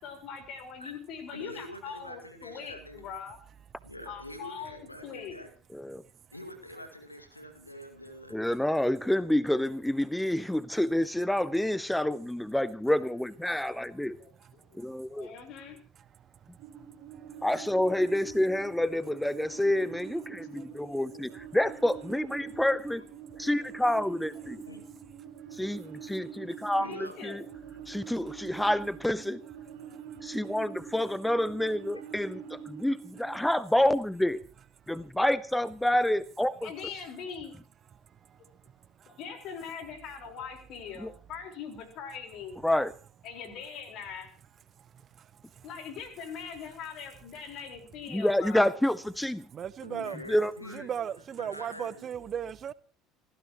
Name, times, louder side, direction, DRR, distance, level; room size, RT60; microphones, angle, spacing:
voice 1, 0.0-3.4 4.0-5.4 14.2-15.8 20.5-21.2 24.6-24.8 26.8-27.5 36.6-37.5 39.1-42.6 43.2-44.3 45.6-48.7 51.3-51.7, left 6 dB, 50° left, 4.4 m, -42 dB
voice 2, 1.3-3.1 3.8-5.5 6.3-8.4 22.9-23.0 24.7-24.8 26.5-27.2 49.8-52.2, left 1 dB, 85° left, 2.1 m, -45 dB
voice 3, 8.3-14.2 14.7-15.3 17.4-23.0 23.4-24.6 25.5-27.4 27.9-29.4 30.2-34.4 34.9-36.7 41.0-41.1 42.6-42.9 48.1-49.5 50.3-50.5, left 1 dB, 5° left, 0.8 m, -28 dB
sound 1, 16.6-33.4, right 8 dB, 60° right, 2.8 m, -45 dB
voice 4, 49.5-50.2 50.9-52.7, right 8 dB, 40° right, 0.8 m, -35 dB
28.0 x 14.5 x 3.0 m
figure-of-eight pair, 60°, 0 cm